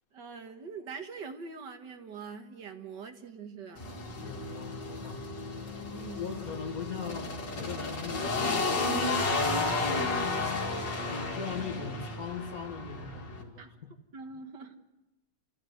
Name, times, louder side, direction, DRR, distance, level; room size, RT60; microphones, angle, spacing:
voice 1, 0.1-3.8 5.9-6.4 13.6-13.7 14.1-14.8, right 5 dB, 75° right, 2.2 m, -43 dB
sound 1, 3.8-13.4, left 3 dB, 85° left, 3.2 m, -32 dB
voice 2, 4.2-5.3 6.1-10.2 11.1-13.9, left 5 dB, 55° left, 2.4 m, -40 dB
30.0 x 14.5 x 7.9 m
omnidirectional pair, 1.9 m